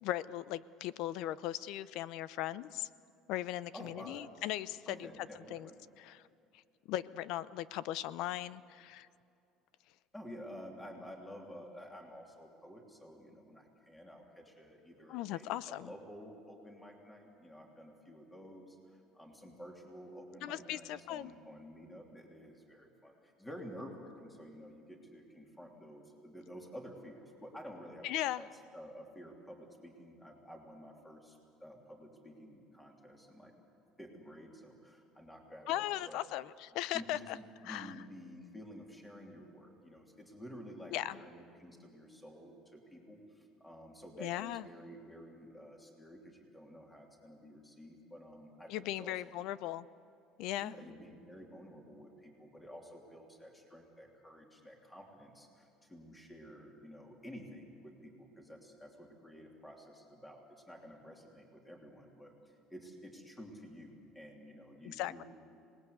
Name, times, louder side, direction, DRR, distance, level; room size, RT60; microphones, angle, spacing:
voice 1, 0.0-2.9 3.3-5.1 5.5-5.7 6.0-6.2 6.9-9.1 15.1-15.9 20.4-21.3 28.0-28.4 35.7-37.4 37.7-37.9 40.9-41.2 44.2-44.6 48.7-49.9 50.4-50.7 64.8-65.2, left 14 dB, 70° left, 17 dB, 0.6 m, -38 dB
voice 2, 3.7-4.3 4.9-5.8 10.1-33.5 34.0-36.2 36.9-49.1 50.6-65.2, equal, 10° left, 1 dB, 3.2 m, -51 dB
26.5 x 19.5 x 8.2 m, 2.5 s
cardioid pair, 135°, 0 cm